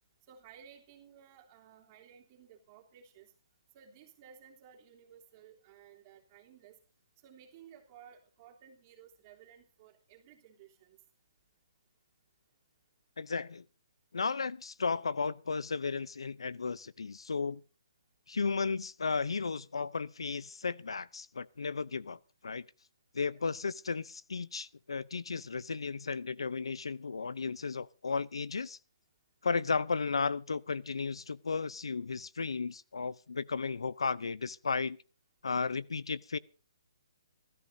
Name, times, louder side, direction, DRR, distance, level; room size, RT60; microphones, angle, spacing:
voice 1, 0.3-3.3 3.7-6.8 7.2-11.0 23.3-23.4, right 8 dB, 25° right, 3.3 m, -57 dB
voice 2, 13.2-13.6 14.1-17.6 18.3-22.6 23.1-28.8 29.4-35.0 35.4-36.4, left 4 dB, 85° left, 0.6 m, -34 dB
27.0 x 13.5 x 2.7 m
hypercardioid pair, 160°, 3 cm